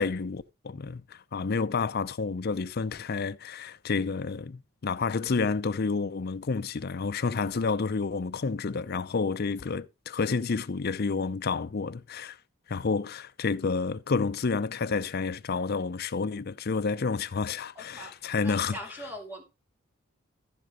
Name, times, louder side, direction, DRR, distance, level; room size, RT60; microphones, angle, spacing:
voice 1, 0.0-12.4 12.7-18.8, left 4 dB, 50° left, 0.5 m, -30 dB
voice 2, 17.7-19.4, equal, 10° right, 2.9 m, -42 dB
14.0 x 5.1 x 5.0 m
head